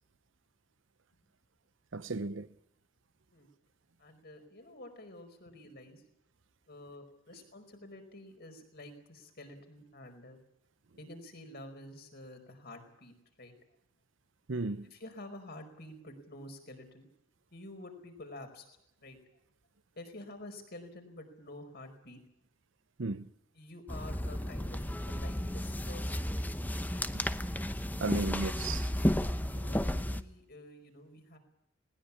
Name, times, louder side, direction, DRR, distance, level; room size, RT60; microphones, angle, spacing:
voice 1, 1.9-2.5 14.5-14.9 23.0-23.3 27.1-27.2 28.0-28.9, right 3 dB, 65° right, 0.8 m, -35 dB
voice 2, 4.0-6.0 6.7-10.4 11.0-13.5 14.9-17.1 17.5-18.7 19.0-19.2 20.0-22.2 23.5-26.3 26.9-27.1 28.0-28.3 29.4-31.4, left 1 dB, 50° left, 4.9 m, -49 dB
sound 1, 23.9-30.2, left 1 dB, 10° left, 0.8 m, -33 dB
20.0 x 20.0 x 8.6 m
head